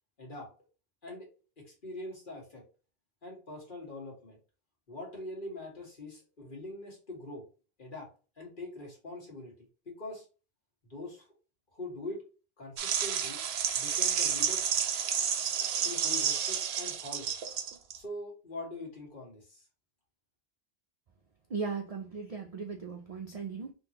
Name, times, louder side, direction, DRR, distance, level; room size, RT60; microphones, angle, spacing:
voice 1, 0.2-0.5 1.0-1.3 1.6-2.6 3.2-4.4 4.9-7.5 7.8-8.1 8.4-9.5 9.8-10.2 10.9-11.2 11.7-12.2 12.6-13.4 13.7-14.7 15.8-17.3 17.9-19.6, left 2 dB, 50° left, 1.7 m, -43 dB
sound 1, 12.8-18.0, right 8 dB, 80° right, 0.8 m, -30 dB
voice 2, 21.5-23.7, right 5 dB, 50° right, 0.4 m, -37 dB
3.7 x 3.0 x 2.8 m
omnidirectional pair, 1.1 m